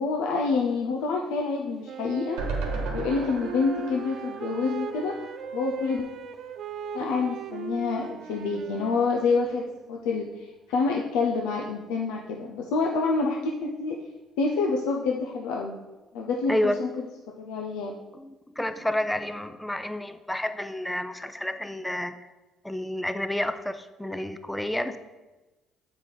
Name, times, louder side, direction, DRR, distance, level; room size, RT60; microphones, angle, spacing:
voice 1, 0.0-2.4 2.9-5.2 5.5-6.0 6.9-14.0 14.4-15.8 16.1-16.5 16.8-16.9 17.4-17.9, left 4 dB, 85° left, 0 dB, 0.6 m, -27 dB
Wind instrument woodwind instrument, 1.8-9.8, right 6 dB, 65° right, 0.5 m, -39 dB
sound 1, 2.4-5.6 6.0-6.1 6.3-6.4, right 3 dB, 90° right, 1.2 m, -34 dB
voice 2, 18.2-22.2 22.6-25.0, left 1 dB, 5° left, 10 dB, 0.5 m, -30 dB
7.3 x 4.9 x 4.0 m, 1.1 s
supercardioid pair, 70°, 0 cm